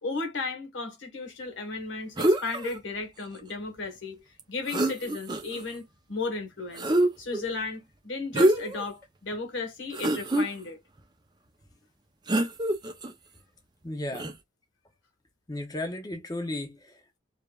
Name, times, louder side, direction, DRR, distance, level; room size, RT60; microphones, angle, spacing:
voice 1, 0.0-4.2 4.5-6.8 7.2-10.8, left 3 dB, 75° left, 1.4 m, -35 dB
sound 1, 2.2-2.8 4.4-4.5 4.7-5.6 6.8-7.4 8.3-8.9 9.3-9.4 9.9-10.5 12.3-13.1 14.1-14.3, right 1 dB, 20° right, 0.6 m, -25 dB
voice 2, 13.8-14.3 15.5-17.2, left 1 dB, 20° left, 0.6 m, -35 dB
4.8 x 2.3 x 2.3 m
head